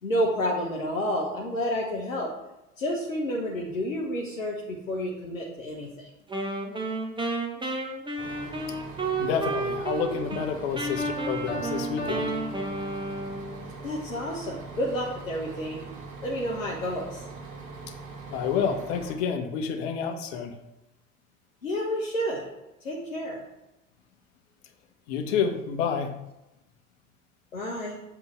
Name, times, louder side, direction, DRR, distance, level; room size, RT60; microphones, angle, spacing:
voice 1, 0.0-2.3 2.8-6.1 13.8-15.8 16.2-17.2 21.6-22.5 22.8-23.4 27.5-28.0, equal, 80° left, -2 dB, 1.1 m, -30 dB
Wind instrument woodwind instrument, 6.3-10.5 10.7-13.7, right 2 dB, 10° right, 1.2 m, -32 dB
Bus, 8.2-19.1, right 4 dB, 45° right, 2.5 m, -42 dB
voice 2, 9.2-12.4 17.9-18.0 18.3-20.6 25.1-26.2, left 7 dB, 55° left, 5 dB, 1.1 m, -29 dB
Piano, 11.0-13.4, equal, 30° left, 2.0 m, -35 dB
8.0 x 3.8 x 5.8 m, 0.94 s
figure-of-eight pair, 70°, 39 cm